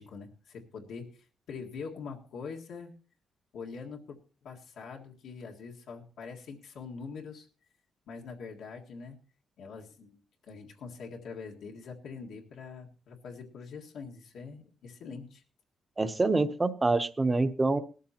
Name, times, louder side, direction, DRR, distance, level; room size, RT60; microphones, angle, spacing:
voice 1, 0.0-2.9 3.5-7.5 8.1-9.2 9.6-15.4, left 5 dB, 80° left, 0 dB, 1.8 m, -44 dB
voice 2, 16.0-17.8, right 3 dB, 15° right, 10 dB, 0.8 m, -26 dB
18.5 x 13.5 x 2.9 m, 0.36 s
wide cardioid pair, 170°, 0 cm